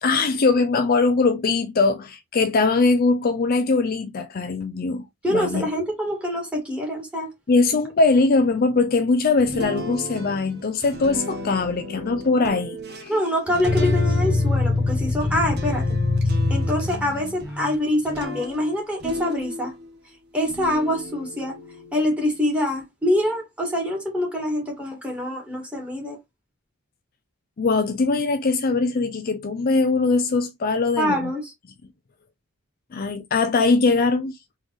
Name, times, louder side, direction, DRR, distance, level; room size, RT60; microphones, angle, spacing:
voice 1, 0.0-5.0 5.3-5.6 7.5-13.1 27.6-31.3 32.9-34.4, left 3 dB, 40° left, 0.4 m, -21 dB
voice 2, 5.2-7.3 13.1-15.9 16.2-19.7 20.3-21.6 21.9-26.2 31.0-31.5, left 1 dB, 5° right, 2.4 m, -25 dB
sound 1, 9.4-20.0 20.4-22.8, left 1 dB, 50° right, 1.1 m, -35 dB
sound 2, 13.6-17.3, left 3 dB, 80° left, 1.8 m, -22 dB
4.0 x 3.9 x 3.1 m
head